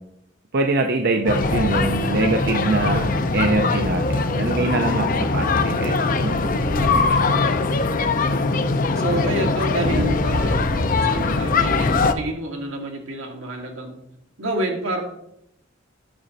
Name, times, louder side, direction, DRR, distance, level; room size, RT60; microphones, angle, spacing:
voice 1, 0.5-6.6, right 2 dB, 55° right, 5 dB, 0.6 m, -23 dB
sound 1, 1.3-12.1, left 3 dB, 45° left, 0.6 m, -21 dB
voice 2, 6.6-7.5 8.9-14.0 14.4-15.0, right 1 dB, 85° right, 1 dB, 2.0 m, -29 dB
9.6 x 6.2 x 4.1 m, 0.79 s
head